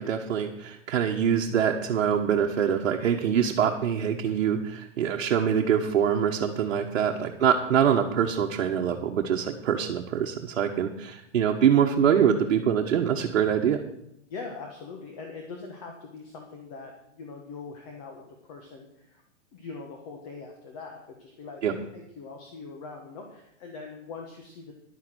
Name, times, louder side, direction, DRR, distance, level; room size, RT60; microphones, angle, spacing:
voice 1, 0.0-13.8 21.6-21.7, right 8 dB, 60° right, 1 dB, 1.4 m, -24 dB
voice 2, 14.3-19.2 19.5-24.7, left 4 dB, 30° left, 2 dB, 1.6 m, -42 dB
11.0 x 9.6 x 6.3 m, 0.78 s
hypercardioid pair, 165°, 38 cm